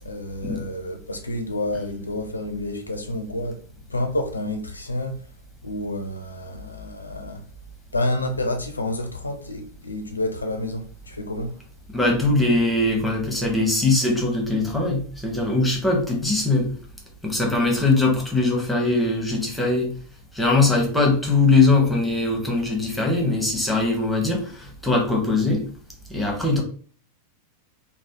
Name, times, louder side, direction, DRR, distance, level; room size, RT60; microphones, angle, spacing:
voice 1, 0.0-3.6 3.9-5.3 5.6-7.4 7.9-11.5, left 1 dB, 80° left, 0.5 m, -29 dB
voice 2, 11.9-16.7 17.2-19.9 20.3-25.6 26.1-26.6, left 3 dB, 5° left, 1.0 m, -21 dB
3.2 x 2.0 x 2.8 m
figure-of-eight pair, 90°, 0 cm